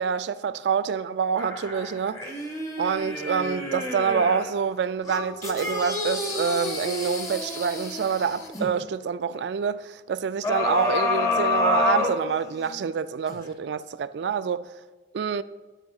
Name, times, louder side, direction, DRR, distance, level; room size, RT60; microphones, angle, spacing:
voice 1, 0.0-2.2 2.8-14.7 15.1-15.4, right 6 dB, 70° right, 0.3 m, -26 dB
sound 1, 1.4-4.5 5.0-8.7 10.4-12.8 13.3-13.4, left 3 dB, 20° left, 1.0 m, -29 dB
12.0 x 8.8 x 2.4 m
head